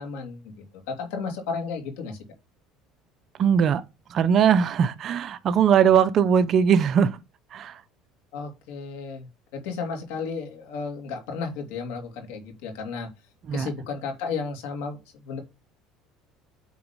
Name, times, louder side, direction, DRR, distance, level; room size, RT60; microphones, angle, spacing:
voice 1, 0.0-2.2 8.3-13.1 13.5-15.4, left 5 dB, 85° left, 3.1 m, -33 dB
voice 2, 3.4-3.8 4.1-7.2 7.5-7.8 13.5-13.7, right 7 dB, 40° right, 0.7 m, -20 dB
9.4 x 4.0 x 5.3 m
cardioid pair, 130°, 0 cm